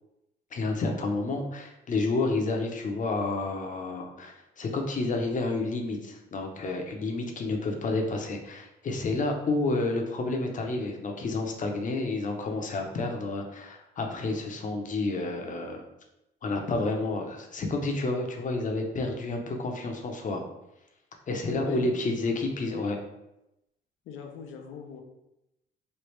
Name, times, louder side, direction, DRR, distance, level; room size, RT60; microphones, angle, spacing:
voice 1, 0.5-15.8 16.4-20.5 21.3-23.0, left 2 dB, 40° left, 3 dB, 0.6 m, -30 dB
voice 2, 21.5-22.4 24.1-25.0, left 5 dB, 85° left, 4 dB, 0.6 m, -40 dB
3.2 x 2.3 x 3.1 m, 0.88 s
cardioid pair, 90°, 20 cm